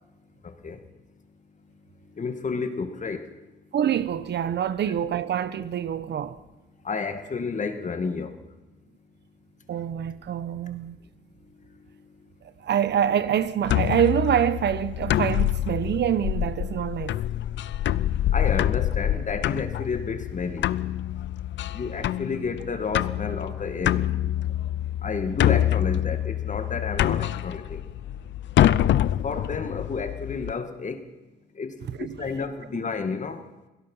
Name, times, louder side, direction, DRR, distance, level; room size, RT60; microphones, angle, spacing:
voice 1, 2.2-3.2 4.8-4.9 6.9-8.3 18.3-20.6 21.7-24.0 25.0-27.8 28.6-28.8 29.2-31.0 31.6-31.7 32.0-33.4, left 5 dB, 40° left, 2.2 m, -31 dB
voice 2, 3.7-6.4 9.7-11.0 12.6-17.2 32.0-32.2, right 9 dB, 60° right, 1.1 m, -25 dB
sound 1, 13.7-30.5, left 12 dB, 65° left, 0.6 m, -26 dB
28.5 x 17.5 x 5.6 m
cardioid pair, 90°, 20 cm